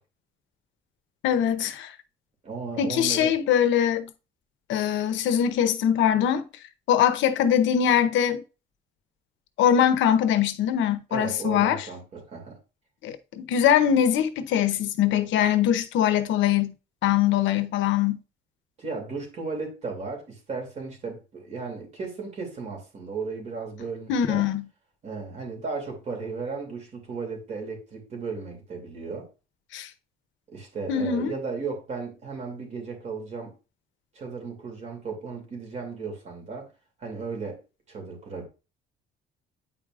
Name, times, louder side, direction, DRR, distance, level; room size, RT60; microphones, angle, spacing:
voice 1, 1.2-1.9 2.8-4.1 4.7-6.5 6.9-8.4 9.6-11.9 13.0-16.7 17.0-18.2 24.1-24.6 29.7-29.9 30.9-31.3, left 9 dB, 75° left, 0.9 m, -22 dB
voice 2, 2.4-3.4 11.1-12.6 18.8-24.4 25.0-29.3 30.5-33.5 34.1-36.7 37.0-37.6 37.9-38.5, right 4 dB, 35° right, 2.7 m, -35 dB
9.3 x 4.8 x 2.5 m
cardioid pair, 175°, 20 cm